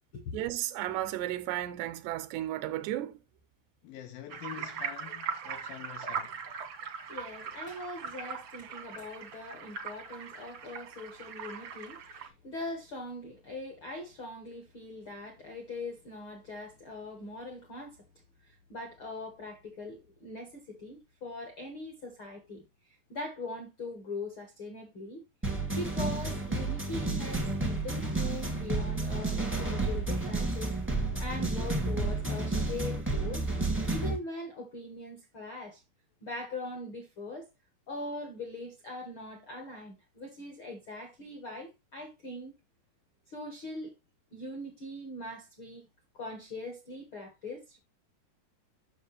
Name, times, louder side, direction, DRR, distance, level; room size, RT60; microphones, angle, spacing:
voice 1, 0.3-3.2, right 13 dB, 90° right, 2.9 m, -34 dB
voice 2, 3.8-6.4, left 11 dB, 80° left, 2.1 m, -46 dB
sound 1, 4.3-12.3, right 6 dB, 70° right, 1.3 m, -40 dB
voice 3, 7.1-17.9 18.4-22.6 23.1-25.2 25.7-30.7 31.2-33.4 33.8-35.8 36.2-37.5 37.9-42.5 43.3-43.9 44.3-45.8 46.1-47.8, left 2 dB, 65° left, 1.3 m, -41 dB
sound 2, 25.4-34.2, right 2 dB, 10° right, 0.6 m, -31 dB
7.7 x 6.5 x 3.3 m
omnidirectional pair, 4.7 m